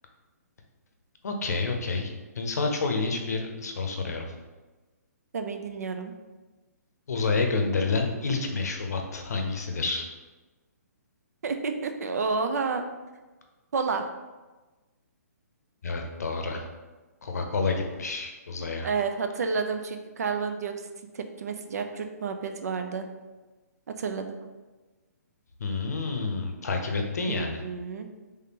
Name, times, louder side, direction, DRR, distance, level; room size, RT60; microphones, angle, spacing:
voice 1, 1.2-4.3 7.1-10.1 15.8-16.6 17.2-18.9 25.6-27.6, left 3 dB, 70° left, 3 dB, 0.7 m, -29 dB
voice 2, 5.3-6.1 11.4-12.8 13.7-14.1 18.8-20.7 21.1-23.1 23.9-24.4 27.3-28.1, right 5 dB, 65° right, 7 dB, 0.4 m, -30 dB
3.6 x 3.3 x 2.9 m, 1.2 s
hypercardioid pair, 135°, 9 cm